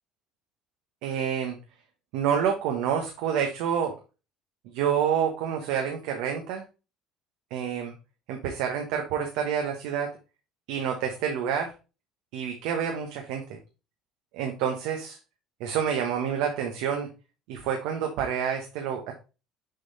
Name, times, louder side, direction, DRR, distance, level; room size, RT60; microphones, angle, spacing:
voice 1, 1.0-1.6 2.1-3.9 4.7-6.6 7.5-7.9 8.3-10.1 10.7-11.7 12.3-13.4 14.3-15.2 15.6-17.1 17.5-19.1, right 8 dB, 80° right, 3 dB, 1.1 m, -28 dB
6.7 x 3.9 x 4.0 m, 0.31 s
cardioid pair, 130°, 0 cm